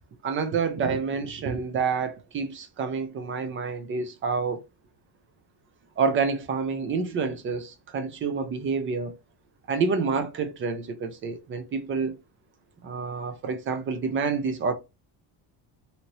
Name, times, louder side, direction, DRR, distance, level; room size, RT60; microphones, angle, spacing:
voice 1, 0.2-4.6 6.0-9.1 9.7-12.2 12.8-14.7, right 5 dB, 30° right, 0.4 m, -28 dB
2.8 x 2.8 x 2.9 m
cardioid pair, 155°, 47 cm